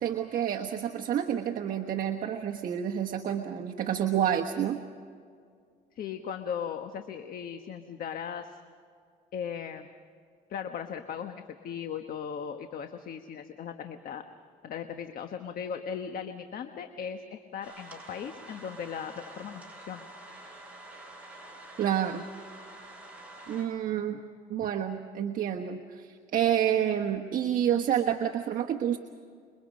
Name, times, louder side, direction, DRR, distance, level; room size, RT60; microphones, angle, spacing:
voice 1, 0.0-4.8 21.8-22.2 23.5-24.2 24.5-29.0, right 10 dB, 55° right, 2 dB, 1.3 m, -29 dB
voice 2, 5.9-8.6 9.3-9.9 10.5-14.2 14.6-20.0, left 7 dB, 60° left, 7 dB, 1.3 m, -38 dB
sound 1, 17.6-23.6, right 1 dB, 10° right, 7.4 m, -47 dB
27.5 x 23.0 x 5.3 m, 2.2 s
cardioid pair, 110°, 17 cm